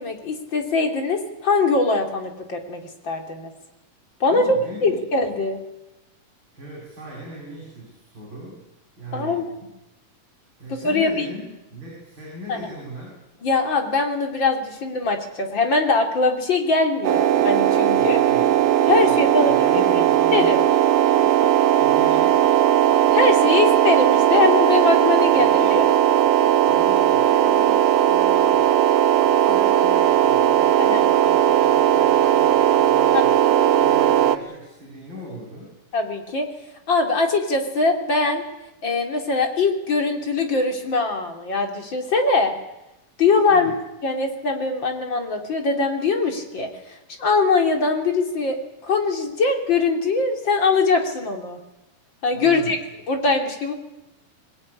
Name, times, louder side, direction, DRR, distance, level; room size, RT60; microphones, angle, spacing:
voice 1, 0.0-3.5 4.2-4.6 4.8-5.6 9.1-9.5 10.7-11.3 12.5-12.7 13.4-18.2 18.9-19.8 20.3-20.6 23.1-25.9 30.8-31.0 33.1-33.2 33.6-33.7 35.9-36.5 36.9-38.4 38.8-42.5 43.2-43.7 44.0-51.6 52.2-52.8 53.1-53.7, left 3 dB, 35° left, 4 dB, 3.5 m, -22 dB
voice 2, 4.3-5.3 6.5-8.6 9.0-9.5 10.6-13.1 17.8-20.6 21.8-22.5 25.2-25.8 26.6-28.8 29.2-33.4 33.8-35.8 43.5-43.8 52.3-52.8, equal, 35° right, -3 dB, 7.9 m, -39 dB
sound 1, 17.0-34.4, right 11 dB, 75° right, 2.6 m, -17 dB
22.5 x 20.0 x 10.0 m, 0.94 s
omnidirectional pair, 3.9 m